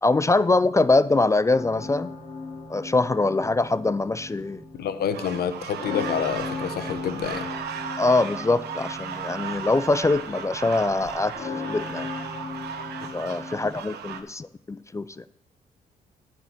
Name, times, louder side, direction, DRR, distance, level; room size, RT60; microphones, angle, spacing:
voice 1, 0.0-2.1 2.7-4.6 8.0-12.1 13.0-15.2, left 3 dB, 20° left, 15 dB, 0.4 m, -23 dB
sound 1, 1.6-13.8, left 3 dB, 35° left, 2.8 m, -38 dB
voice 2, 4.8-7.5, left 8 dB, 70° left, 10 dB, 0.9 m, -28 dB
sound 2, 5.1-14.2, right 7 dB, 75° right, 1.0 m, -36 dB
10.0 x 4.5 x 7.4 m, 0.76 s
supercardioid pair, 70°, 17 cm